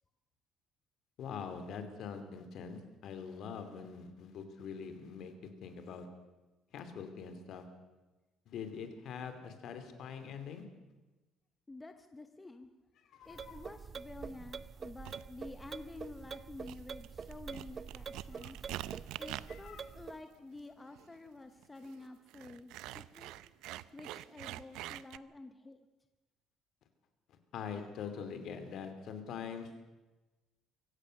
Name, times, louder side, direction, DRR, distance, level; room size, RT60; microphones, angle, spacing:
voice 1, 1.2-5.3 5.6-6.1 6.7-7.6 8.5-10.6 13.1-13.6 18.4-18.5 19.5-19.8 27.5-29.9, left 6 dB, 55° left, 8 dB, 2.9 m, -44 dB
voice 2, 11.7-12.7 13.2-18.7 19.2-23.3 23.9-25.9, left 2 dB, 10° left, 7 dB, 0.9 m, -50 dB
sound 1, 13.3-20.2, right 6 dB, 30° right, 0.6 m, -46 dB
sound 2, 15.0-15.3 16.0-16.3 16.6-25.2, right 15 dB, 85° right, 0.6 m, -46 dB
24.5 x 16.5 x 6.6 m, 1.1 s
cardioid pair, 160°, 0 cm